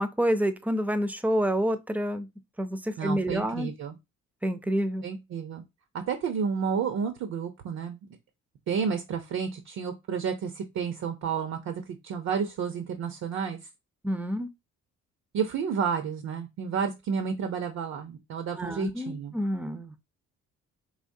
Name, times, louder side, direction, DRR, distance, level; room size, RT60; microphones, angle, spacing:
voice 1, 0.0-2.3 2.6-3.7 4.4-5.0 14.0-14.5 18.6-19.9, equal, 5° right, 0.6 m, -28 dB
voice 2, 3.0-3.9 5.0-5.6 6.1-8.0 8.7-13.6 15.3-19.3, right 6 dB, 65° right, 0.8 m, -31 dB
4.9 x 3.0 x 2.7 m
cardioid pair, 90°, 30 cm